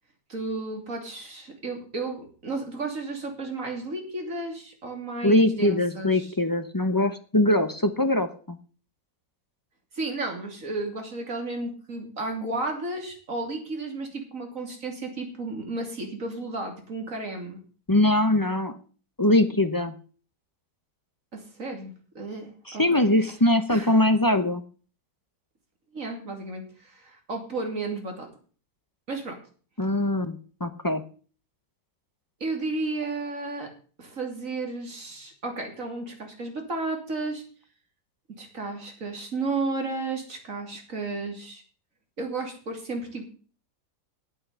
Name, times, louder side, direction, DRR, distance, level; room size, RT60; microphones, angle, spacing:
voice 1, 0.3-6.3 9.9-17.6 21.3-22.8 23.7-23.9 25.9-28.3 29.1-29.4 32.4-33.7 34.0-37.4 38.4-41.6 42.2-43.2, right 3 dB, 50° right, 3 dB, 3.2 m, -33 dB
voice 2, 5.2-8.6 17.9-18.8 19.2-19.9 22.7-24.6 29.8-31.0, left 1 dB, 30° left, 9 dB, 0.3 m, -22 dB
9.0 x 8.5 x 8.3 m, 0.41 s
omnidirectional pair, 1.8 m